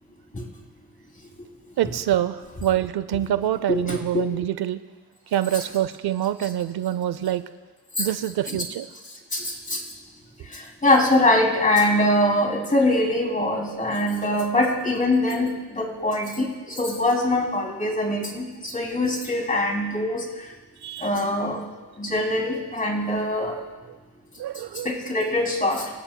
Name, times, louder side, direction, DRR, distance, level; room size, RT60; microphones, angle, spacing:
voice 1, 1.8-4.8 5.3-7.4 8.0-8.9 20.8-21.1 24.4-24.9, right 12 dB, 80° right, 13 dB, 0.7 m, -25 dB
voice 2, 3.7-4.0 5.5-5.6 8.0-8.1 8.5-8.6 9.3-9.8 10.5-20.2 21.0-21.6 22.0-23.6 24.8-25.9, left 1 dB, 20° left, 0 dB, 3.0 m, -23 dB
25.5 x 15.5 x 2.3 m, 1.3 s
cardioid pair, 120°, 38 cm